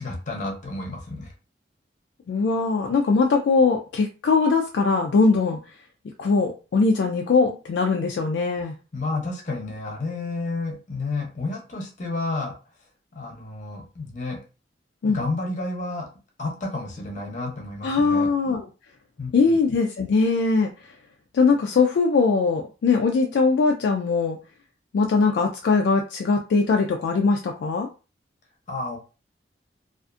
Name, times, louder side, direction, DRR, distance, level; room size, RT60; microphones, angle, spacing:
voice 1, 0.0-1.3 8.9-12.5 13.1-14.4 15.1-16.1 16.4-18.3 19.2-19.6 28.7-29.0, left 2 dB, 45° left, 1 dB, 0.7 m, -31 dB
voice 2, 2.3-5.6 6.2-8.7 15.0-15.2 17.8-18.7 19.3-20.7 21.3-24.4 24.9-27.9, left 4 dB, 70° left, 3 dB, 0.3 m, -21 dB
2.4 x 2.4 x 2.4 m, 0.33 s
head